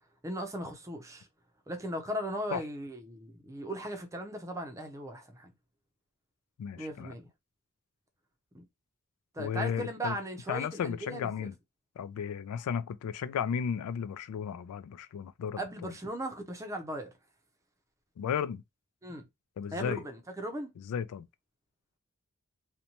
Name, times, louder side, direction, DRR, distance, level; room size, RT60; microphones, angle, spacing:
voice 1, 0.2-1.3 1.7-5.5 6.8-7.3 8.5-8.6 9.3-11.5 15.6-17.1 19.0-19.3 19.7-20.7, right 1 dB, 15° right, 0.5 m, -38 dB
voice 2, 6.6-7.1 9.4-10.2 10.5-11.5 12.0-15.6 18.2-18.6 19.6-20.0 20.9-21.3, left 7 dB, 80° left, 0.3 m, -34 dB
2.6 x 2.1 x 2.8 m
head